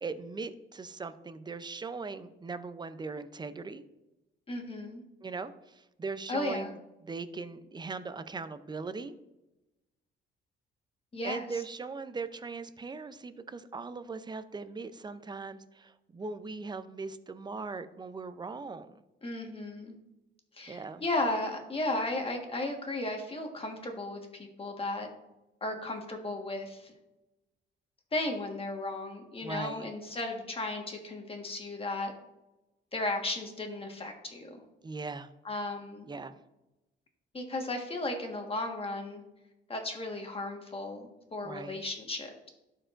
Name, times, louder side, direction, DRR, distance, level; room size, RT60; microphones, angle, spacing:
voice 1, 0.0-3.8 5.2-6.8 7.0-9.1 11.2-18.9 20.7-21.0 29.4-29.9 34.8-35.3 36.1-36.4 41.4-41.8, right 4 dB, 20° right, 12 dB, 0.5 m, -39 dB
voice 2, 4.5-5.0 6.3-6.7 11.1-11.6 19.2-20.0 20.5-25.1 25.6-26.9 28.1-32.1 32.9-34.7 35.4-36.1 37.3-39.2 39.7-42.5, left 2 dB, 30° left, 3 dB, 1.5 m, -35 dB
12.0 x 4.6 x 2.5 m, 0.98 s
cardioid pair, 90°, 20 cm